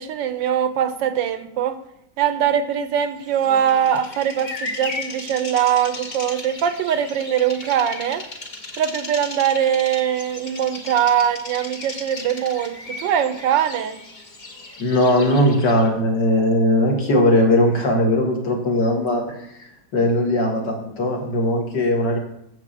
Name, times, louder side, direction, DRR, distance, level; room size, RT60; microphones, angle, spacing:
voice 1, 0.0-1.8 2.2-8.2 8.8-14.0, right 9 dB, 75° right, 11 dB, 1.3 m, -22 dB
Bird vocalization bird call bird song, 3.2-15.9, left 3 dB, 30° left, 0.9 m, -36 dB
voice 2, 14.8-19.2 19.9-22.2, left 1 dB, 65° left, 0 dB, 2.5 m, -19 dB
7.2 x 6.1 x 7.5 m, 0.79 s
omnidirectional pair, 2.1 m